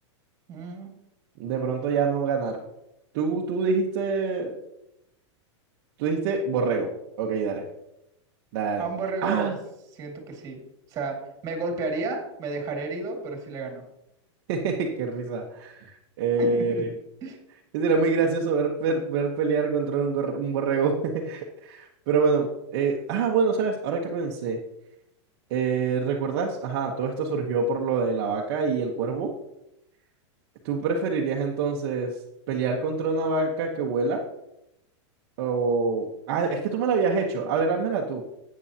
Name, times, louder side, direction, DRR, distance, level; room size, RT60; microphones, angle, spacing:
voice 1, 0.5-0.9 8.8-9.5 9.9-10.6 10.9-11.2 11.4-13.8 16.4-16.8 17.2-17.4, right 3 dB, 20° right, 2 dB, 2.1 m, -31 dB
voice 2, 1.4-2.6 3.1-4.5 6.0-6.9 7.2-7.6 8.5-8.8 9.2-9.5 14.5-16.9 17.7-22.5 22.7-24.6 25.5-29.3 30.6-32.1 32.5-34.2 35.4-38.2, right 4 dB, 40° right, -1 dB, 1.1 m, -26 dB
12.5 x 8.6 x 2.9 m, 0.84 s
supercardioid pair, 165°, 15 cm